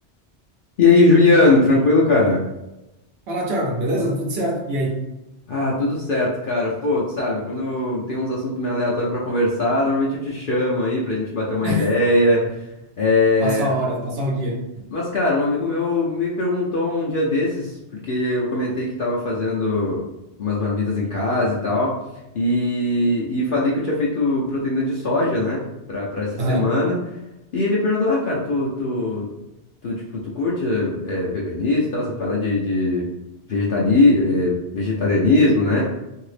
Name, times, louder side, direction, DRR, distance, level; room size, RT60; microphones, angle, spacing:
voice 1, 0.8-2.4 5.5-12.6 13.0-13.7 14.9-17.8 18.0-20.1 20.4-22.0 22.3-25.6 25.9-27.0 27.5-29.3 29.8-33.1 33.5-35.8, left 2 dB, 60° left, -4 dB, 0.7 m, -20 dB
voice 2, 3.3-5.0 11.6-11.9 13.4-14.9 26.4-26.7, equal, 65° right, -1 dB, 0.9 m, -24 dB
2.8 x 2.7 x 3.2 m, 0.96 s
omnidirectional pair, 1.1 m